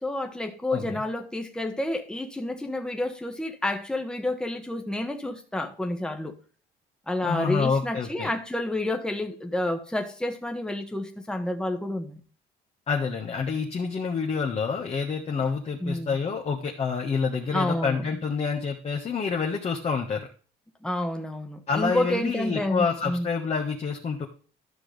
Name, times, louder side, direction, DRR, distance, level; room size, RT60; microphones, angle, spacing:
voice 1, 0.0-6.4 7.1-12.2 15.8-16.2 17.5-18.0 20.8-23.3, left 1 dB, 5° left, 1.4 m, -29 dB
voice 2, 7.2-8.3 12.9-20.3 21.7-24.3, left 5 dB, 40° left, 1.5 m, -28 dB
12.5 x 6.0 x 3.4 m
cardioid pair, 110°, 17 cm